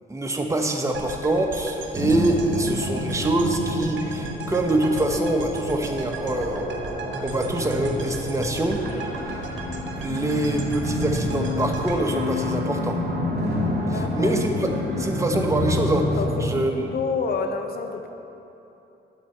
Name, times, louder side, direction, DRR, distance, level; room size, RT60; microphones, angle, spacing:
voice 1, 0.1-6.7 7.2-8.8 9.3-9.4 10.0-13.0 13.9-14.7 15.0-16.1 16.4-16.9, right 1 dB, 15° right, 3 dB, 1.1 m, -25 dB
sound 1, 0.9-13.1, right 3 dB, 70° right, 1.3 m, -37 dB
sound 2, 1.9-16.4, equal, 50° right, 2.4 m, -29 dB
sound 3, 7.1-15.0, left 6 dB, 80° left, 1.5 m, -35 dB
voice 2, 13.8-14.3 16.2-18.1, left 5 dB, 50° left, 6 dB, 0.9 m, -29 dB
12.0 x 4.2 x 7.7 m, 3.0 s
cardioid pair, 90°, 20 cm